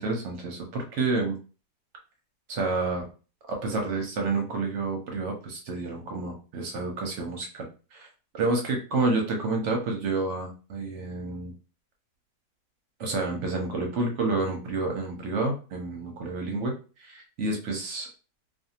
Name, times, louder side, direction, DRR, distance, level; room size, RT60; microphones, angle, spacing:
voice 1, 0.0-1.4 2.5-3.1 3.5-8.1 8.3-11.5 13.0-18.1, right 3 dB, 60° right, 2 dB, 0.8 m, -29 dB
2.5 x 2.4 x 2.7 m, 0.34 s
omnidirectional pair, 1.7 m